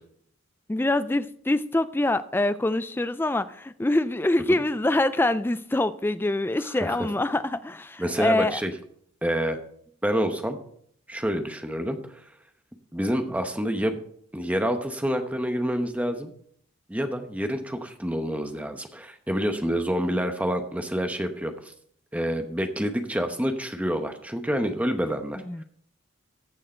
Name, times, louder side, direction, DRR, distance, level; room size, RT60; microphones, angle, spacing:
voice 1, 0.7-8.6 25.3-25.6, left 2 dB, 10° left, 0.3 m, -25 dB
voice 2, 8.0-8.7 9.2-9.6 10.0-10.6 11.1-12.0 12.9-14.0 14.3-16.3 16.9-21.5 22.1-25.4, equal, 5° right, 0.9 m, -27 dB
14.0 x 6.4 x 4.4 m
head